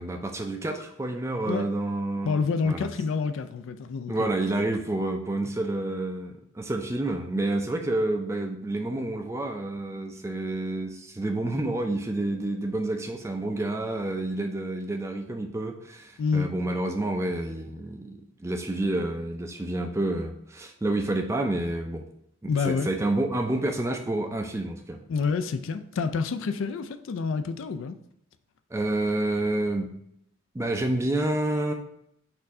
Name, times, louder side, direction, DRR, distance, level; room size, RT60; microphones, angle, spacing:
voice 1, 0.0-2.9 4.1-22.1 22.4-25.0 28.7-29.9 30.5-31.7, right 2 dB, 15° right, 0.4 m, -29 dB
voice 2, 2.2-4.3 16.2-16.5 22.5-23.0 25.1-27.9, left 5 dB, 65° left, 0.3 m, -28 dB
4.3 x 2.6 x 4.1 m
head